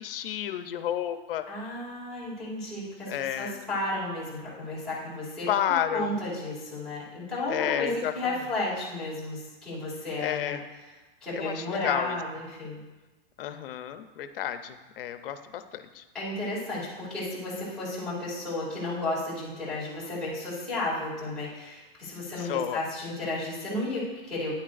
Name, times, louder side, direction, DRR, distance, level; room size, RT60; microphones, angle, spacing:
voice 1, 0.0-1.5 3.1-3.7 5.5-6.2 7.5-8.4 10.2-10.7 11.4-12.2 13.4-16.0 22.4-22.8, left 10 dB, 70° left, 10 dB, 0.7 m, -31 dB
voice 2, 1.5-5.5 5.9-10.6 11.2-12.8 16.1-24.5, left 2 dB, ahead, -11 dB, 2.4 m, -33 dB
9.5 x 8.7 x 2.5 m, 1.2 s
supercardioid pair, 175°, 29 cm